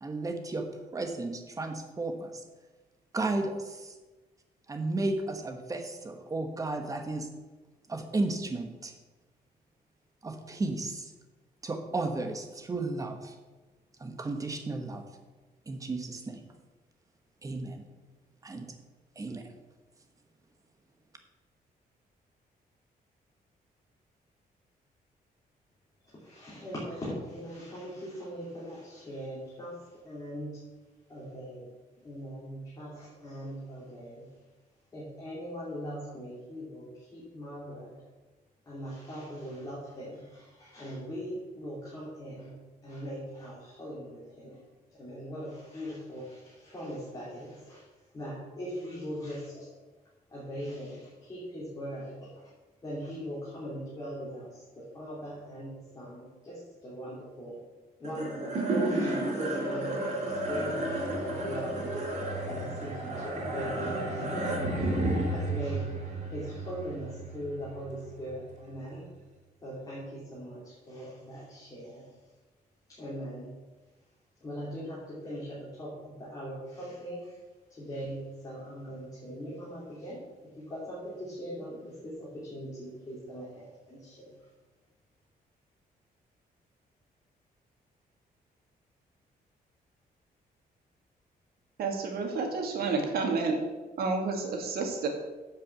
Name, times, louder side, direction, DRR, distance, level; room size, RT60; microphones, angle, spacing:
voice 1, 0.0-0.7 0.9-2.3 3.1-3.9 4.7-7.3 7.9-8.9 10.2-11.1 11.6-13.3 14.0-15.0 15.7-16.4 17.4-17.8 18.4-18.7 19.2-19.5, right 2 dB, 20° right, 5 dB, 1.2 m, -33 dB
voice 2, 26.0-30.6 31.1-31.7 32.0-34.3 34.9-38.0 38.6-42.6 42.8-44.6 44.9-47.9 48.1-49.7 50.3-52.5 52.8-57.6 58.0-62.0 62.5-65.9 66.3-69.0 69.6-72.1 72.9-73.5 74.4-77.4 77.7-84.5, equal, 25° left, -8 dB, 3.3 m, -40 dB
sound 1, 58.0-68.5, right 2 dB, 45° right, 2.9 m, -32 dB
voice 3, 91.8-93.6 94.0-95.1, right 4 dB, 75° right, 3 dB, 2.2 m, -30 dB
10.0 x 5.9 x 7.5 m, 1.2 s
cardioid pair, 170°, 16 cm